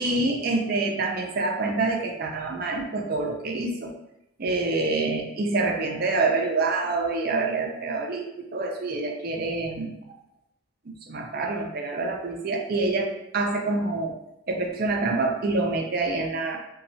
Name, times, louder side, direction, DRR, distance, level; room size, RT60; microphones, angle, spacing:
voice 1, 0.0-3.9 4.4-10.2 10.9-14.2 14.5-16.6, right 3 dB, 50° right, 2 dB, 0.5 m, -26 dB
4.2 x 2.3 x 2.6 m, 0.83 s
head